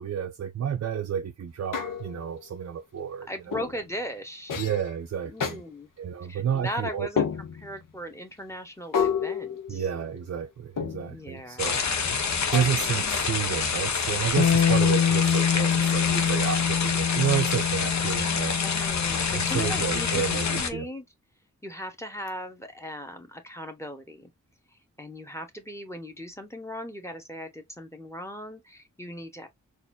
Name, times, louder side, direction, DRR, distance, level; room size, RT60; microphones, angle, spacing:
voice 1, 0.0-3.6 4.6-5.6 6.0-7.1 9.7-11.8 12.5-18.6 19.3-20.9, right 8 dB, 55° right, 0.5 m, -30 dB
sound 1, 1.7-2.3 3.5-3.8 4.5-4.9 5.4-5.6 7.2-7.8 8.9-10.2 10.8-11.3 12.5-13.1, left 6 dB, 90° left, 0.8 m, -30 dB
voice 2, 3.3-4.6 5.2-5.9 6.3-7.3 7.5-9.9 11.1-12.0 12.8-12.9 18.6-21.1 21.6-24.3 25.0-29.5, equal, 10° left, 1.1 m, -38 dB
sound 2, 11.6-20.7, left 5 dB, 60° left, 0.9 m, -27 dB
Bass guitar, 14.4-20.6, left 7 dB, 45° left, 0.5 m, -26 dB
4.1 x 2.5 x 2.6 m
cardioid pair, 60°, 31 cm